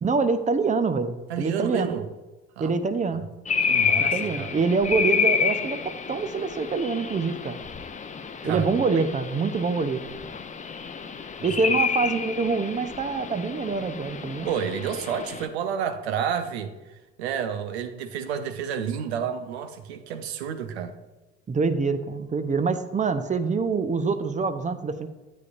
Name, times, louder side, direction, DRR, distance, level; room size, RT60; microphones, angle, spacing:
voice 1, 0.0-1.9 2.6-3.3 4.1-7.6 8.4-10.0 11.4-14.5 21.5-25.1, right 4 dB, 20° right, 0.7 m, -25 dB
voice 2, 1.3-2.1 2.6-2.7 3.7-4.5 8.4-9.0 11.4-11.5 14.4-16.7 17.2-21.0, right 8 dB, 70° right, 0.7 m, -30 dB
Night Bird Atmos, 3.5-15.5, left 6 dB, 20° left, 0.7 m, -29 dB
9.5 x 8.5 x 2.6 m
figure-of-eight pair, 50°, 33 cm